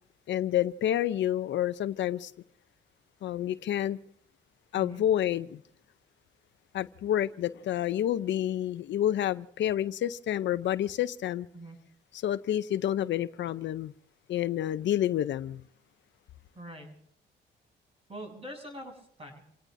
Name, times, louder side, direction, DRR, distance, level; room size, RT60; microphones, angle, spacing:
voice 1, 0.3-2.3 3.2-4.0 4.7-5.6 6.7-11.5 12.2-13.9 14.3-15.6, left 11 dB, 65° left, 0.6 m, -29 dB
voice 2, 16.6-17.0 18.1-19.4, right 1 dB, 30° right, 7.4 m, -44 dB
28.0 x 17.5 x 2.6 m
cardioid pair, 90°, 20 cm